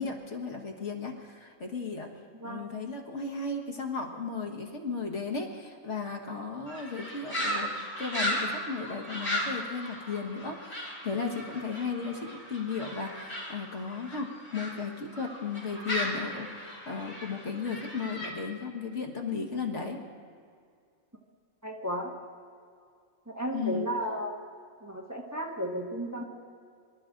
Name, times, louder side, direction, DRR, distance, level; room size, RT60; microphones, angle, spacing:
voice 1, 0.0-2.1 2.4-20.0 23.5-23.9, left 4 dB, 65° left, 2 dB, 1.9 m, -35 dB
sound 1, 6.7-14.7 15.1-18.3, equal, 40° left, 4.7 m, -36 dB
voice 2, 21.6-22.1 23.3-24.3 24.8-26.2, equal, 15° right, -1 dB, 1.5 m, -33 dB
25.0 x 12.5 x 3.8 m, 2.3 s
omnidirectional pair, 1.3 m